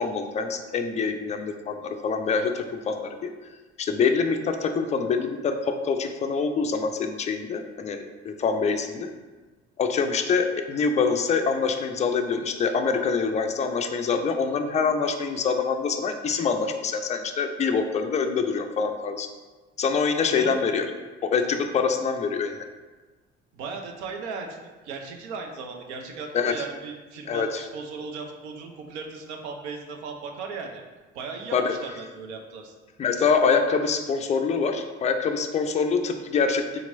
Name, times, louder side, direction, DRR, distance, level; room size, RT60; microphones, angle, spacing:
voice 1, 0.0-3.3 3.8-9.1 9.8-19.3 19.8-20.9 21.2-22.7 26.3-26.6 27.3-27.6 31.5-31.7 33.0-36.6, left 5 dB, 20° left, 6 dB, 0.3 m, -25 dB
voice 2, 23.5-30.8 31.1-32.7, right 4 dB, 75° right, 2 dB, 0.6 m, -37 dB
3.8 x 2.9 x 2.6 m, 1.3 s
hypercardioid pair, 55°, 34 cm